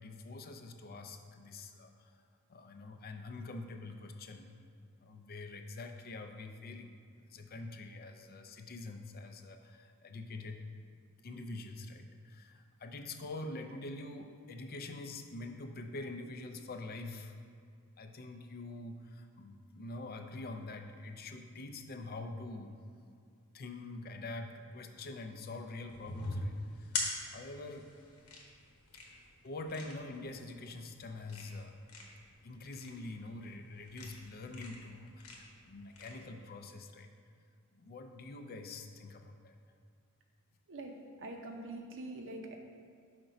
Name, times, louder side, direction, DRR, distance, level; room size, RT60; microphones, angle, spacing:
voice 1, 0.0-2.2 2.5-4.6 5.0-6.9 7.3-10.6 11.2-17.3 18.0-22.8 23.5-27.9 29.0-31.8 32.4-37.1 37.7-39.5, left 2 dB, 45° left, 6 dB, 0.5 m, -45 dB
sound 1, 25.9-36.1, left 2 dB, 90° left, 1.1 m, -43 dB
voice 2, 40.7-42.6, right 2 dB, 60° right, 3 dB, 0.7 m, -44 dB
5.1 x 3.9 x 5.8 m, 2.3 s
head